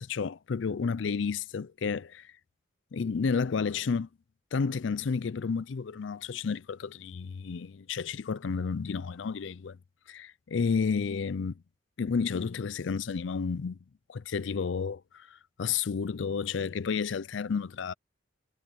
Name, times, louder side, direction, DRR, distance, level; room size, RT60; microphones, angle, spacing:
voice 1, 0.0-2.3 2.9-4.1 4.5-9.8 10.1-11.5 12.0-13.8 14.1-15.3 15.6-17.9, left 5 dB, 70° left, 0.4 m, -31 dB
head